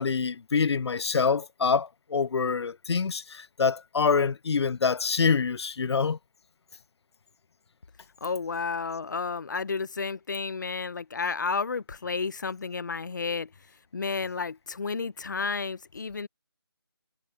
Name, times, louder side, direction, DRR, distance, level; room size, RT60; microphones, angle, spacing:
voice 1, 0.0-6.2, left 5 dB, 80° left, 0.4 m, -26 dB
voice 2, 8.2-13.5 13.9-16.3, left 4 dB, 45° left, 0.8 m, -31 dB
figure-of-eight pair, 170°, 14 cm